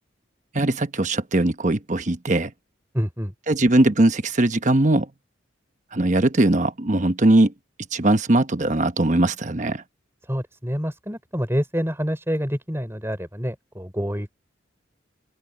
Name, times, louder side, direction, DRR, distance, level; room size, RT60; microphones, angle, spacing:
voice 1, 0.5-2.5 3.5-5.1 5.9-7.5 7.9-9.8, right 1 dB, 40° right, 1.1 m, -20 dB
voice 2, 2.9-3.3 10.3-14.3, equal, 15° right, 4.9 m, -27 dB
open air
head